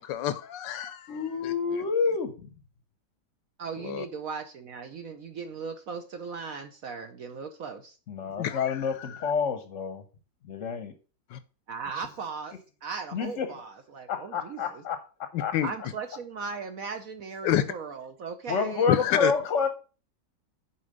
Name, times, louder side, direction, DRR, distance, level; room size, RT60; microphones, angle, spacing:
voice 1, 0.0-1.8 3.8-4.0 8.4-9.3 11.3-11.4 15.3-15.7 17.4-17.6 18.9-19.3, left 12 dB, 80° left, 1.3 m, -29 dB
voice 2, 1.1-2.3 8.1-10.0 10.4-10.9 13.1-13.6 14.1-15.0 15.4-15.6 18.5-19.7, left 5 dB, 50° left, 1.0 m, -28 dB
voice 3, 3.6-8.0 11.7-12.6 12.8-14.8 15.6-18.9, right 5 dB, 60° right, 1.0 m, -38 dB
7.1 x 4.8 x 6.3 m
omnidirectional pair, 2.0 m